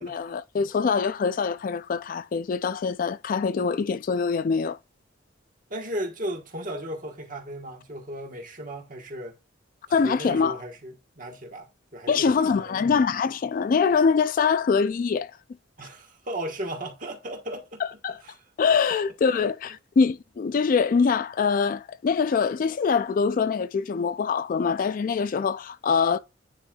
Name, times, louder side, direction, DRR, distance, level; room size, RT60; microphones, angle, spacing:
voice 1, 0.0-4.8 9.9-10.6 12.1-15.3 18.0-18.2 18.6-26.2, left 5 dB, 45° left, 0.3 m, -24 dB
voice 2, 5.7-9.4 9.9-12.9 15.8-18.4 19.3-19.5, right 1 dB, 45° right, 1.3 m, -36 dB
9.6 x 4.4 x 2.3 m
head